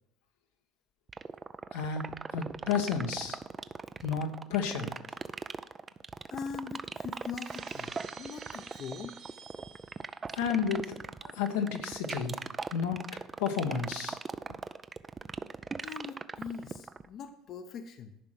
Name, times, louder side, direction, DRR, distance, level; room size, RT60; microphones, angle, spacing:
sound 1, 1.1-17.1, right 5 dB, 25° right, 0.4 m, -38 dB
voice 1, 1.7-2.1 2.3-3.4 4.0-5.0 10.3-11.0 11.2-12.4 12.7-13.0 13.4-14.2, left 6 dB, 90° left, 3 dB, 1.3 m, -31 dB
voice 2, 6.3-9.1 15.8-18.2, left 6 dB, 50° left, 7 dB, 0.8 m, -42 dB
Shatter, 7.4-10.2, right 7 dB, 55° right, 2.6 m, -50 dB
11.0 x 4.9 x 6.0 m, 0.81 s
supercardioid pair, 90°, 0 cm